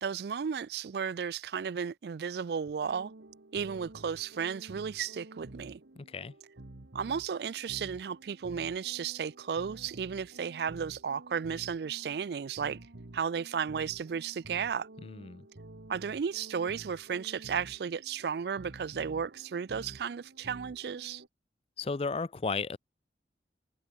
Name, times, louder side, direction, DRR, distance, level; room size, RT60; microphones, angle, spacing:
voice 1, 0.0-3.1 3.5-5.8 6.9-12.8 13.1-14.9 15.9-21.2, right 7 dB, 65° right, 0.4 m, -34 dB
sound 1, 2.7-21.3, right 2 dB, 85° right, 1.3 m, -51 dB
voice 2, 6.0-6.3 15.0-15.5 21.8-22.8, left 4 dB, 35° left, 0.4 m, -34 dB
head